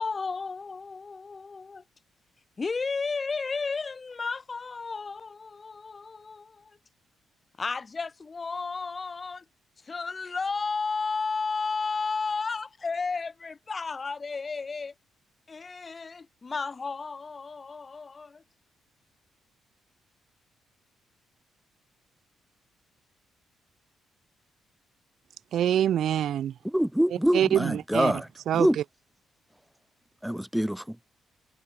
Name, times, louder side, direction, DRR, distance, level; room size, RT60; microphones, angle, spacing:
voice 1, 0.0-1.8 2.6-6.8 7.6-9.4 9.8-14.9 15.5-18.4, left 4 dB, 30° left, 3.7 m, -33 dB
voice 2, 25.5-26.5 27.1-28.2 28.5-28.8, right 10 dB, 70° right, 1.4 m, -25 dB
voice 3, 26.7-28.2 28.6-28.8 30.2-30.9, equal, 5° right, 3.3 m, -25 dB
cardioid pair, 90°, 0 cm